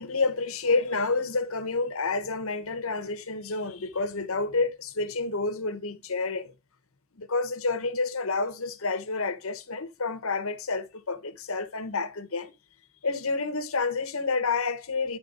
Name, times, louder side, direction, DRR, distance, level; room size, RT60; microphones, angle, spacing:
voice 1, 0.0-6.5 7.1-12.5 13.0-15.2, left 3 dB, 70° left, 1.1 m, -29 dB
10.5 x 4.4 x 3.9 m
head